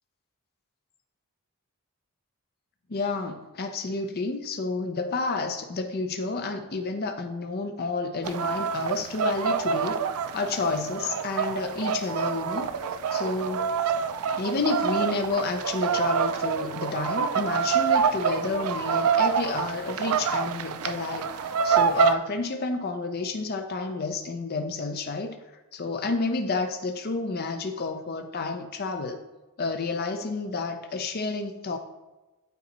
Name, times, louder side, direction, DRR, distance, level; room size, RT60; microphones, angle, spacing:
voice 1, 2.9-10.0 10.3-13.7 14.4-25.3 25.7-29.2 29.6-31.8, left 3 dB, 45° left, 5 dB, 0.6 m, -30 dB
sound 1, 8.2-22.1, right 6 dB, 85° right, 0.4 m, -26 dB
9.3 x 4.0 x 4.1 m, 1.1 s
head